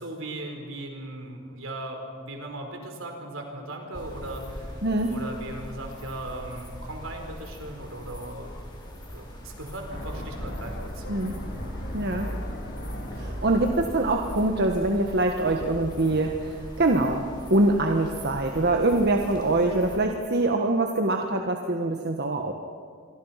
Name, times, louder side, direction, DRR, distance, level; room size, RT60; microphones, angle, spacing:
voice 1, 0.0-4.8 5.1-8.5 9.1-11.1, right 1 dB, 75° right, 3 dB, 4.7 m, -38 dB
sound 1, 3.9-20.0, equal, 25° left, 5.2 m, -41 dB
voice 2, 4.8-5.1 11.1-11.3 11.9-12.3 13.1-17.2 17.5-22.5, right 2 dB, 55° right, 3 dB, 1.5 m, -24 dB
sound 2, 9.9-15.9, equal, 60° left, 3.9 m, -37 dB
27.5 x 24.5 x 5.9 m, 2.1 s
head